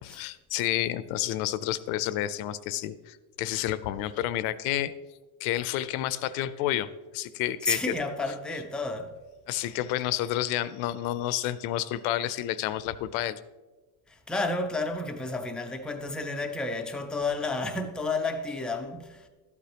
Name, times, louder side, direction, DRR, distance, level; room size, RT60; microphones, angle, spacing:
voice 1, 0.0-4.9 5.4-6.9 7.1-7.9 9.5-13.4, left 13 dB, 70° left, 0.6 m, -30 dB
voice 2, 7.7-9.1 14.1-19.3, left 3 dB, ahead, 0.3 m, -31 dB
12.0 x 8.4 x 2.9 m
supercardioid pair, 130°, 45 cm